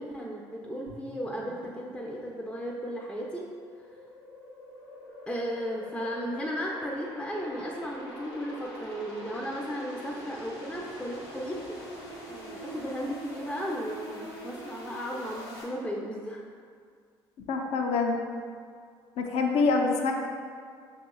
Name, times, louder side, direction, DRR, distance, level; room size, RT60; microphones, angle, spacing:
voice 1, 0.0-3.5 5.3-11.8 12.3-16.4, equal, 5° left, -2 dB, 0.5 m, -35 dB
sound 1, 0.9-15.6, equal, 85° left, 1.3 m, -44 dB
voice 2, 17.5-18.2 19.2-20.1, left 4 dB, 60° left, 2 dB, 0.5 m, -25 dB
6.0 x 3.0 x 2.3 m, 2.1 s
hypercardioid pair, 55°, 12 cm